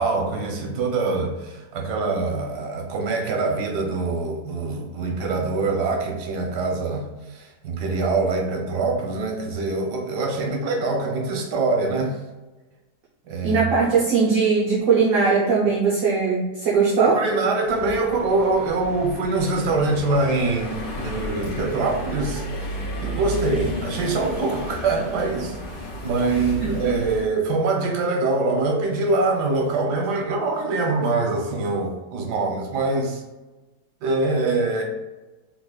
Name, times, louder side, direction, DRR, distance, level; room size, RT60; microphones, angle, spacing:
voice 1, 0.0-12.2 13.2-13.6 17.0-33.2 34.0-34.8, right 3 dB, 85° right, 1 dB, 1.3 m, -24 dB
voice 2, 13.4-17.1 26.6-26.9, right 5 dB, 60° right, -6 dB, 1.0 m, -20 dB
sound 1, 17.7-27.2, equal, 60° left, 1.6 m, -32 dB
3.8 x 3.0 x 2.3 m, 1.1 s
omnidirectional pair, 1.7 m